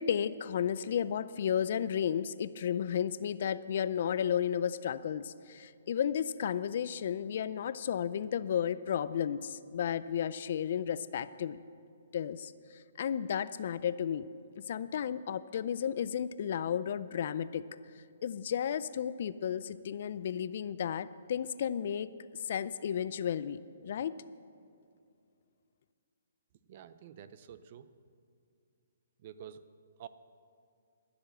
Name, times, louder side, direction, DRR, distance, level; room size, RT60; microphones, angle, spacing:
voice 1, 0.0-11.6 12.1-12.5 13.0-14.3 14.6-17.6 18.2-22.1 22.5-24.1, left 8 dB, 50° left, 15 dB, 0.4 m, -33 dB
voice 2, 26.7-27.9 29.2-29.7 30.0-30.1, right 9 dB, 40° right, 13 dB, 0.5 m, -49 dB
14.0 x 6.9 x 7.6 m, 2.4 s
hypercardioid pair, 155°, 0 cm